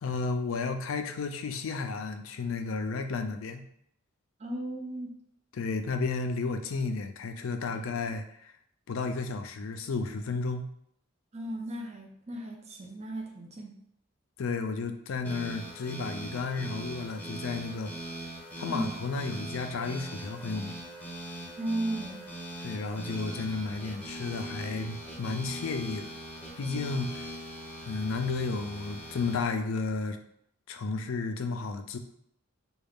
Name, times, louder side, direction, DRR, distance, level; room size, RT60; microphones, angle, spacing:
voice 1, 0.0-3.6 5.5-8.5 8.9-10.7 14.4-17.9 18.6-20.8 22.6-26.1 26.6-27.3 27.8-30.2 30.7-32.0, left 4 dB, 65° left, 7 dB, 0.4 m, -33 dB
voice 2, 4.4-5.1 7.7-8.1 11.3-13.7 18.7-19.0 21.6-22.2, right 1 dB, 30° right, 0 dB, 0.5 m, -35 dB
sound 1, 15.2-29.4, right 1 dB, 5° left, 0.8 m, -41 dB
3.8 x 2.4 x 3.5 m, 0.71 s
head